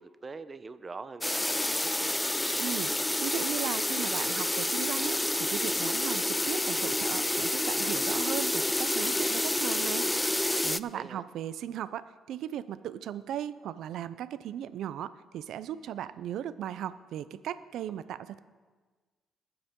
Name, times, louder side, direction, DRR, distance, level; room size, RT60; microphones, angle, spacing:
voice 1, 0.0-2.2 10.9-11.2 17.9-18.0, right 4 dB, 30° right, 12 dB, 0.7 m, -43 dB
sound 1, 1.2-10.8, left 1 dB, 10° left, 0.3 m, -29 dB
voice 2, 2.6-10.1 10.6-18.4, right 10 dB, 80° right, 14 dB, 0.4 m, -37 dB
20.5 x 7.8 x 3.7 m, 1.4 s
cardioid pair, 90°, 0 cm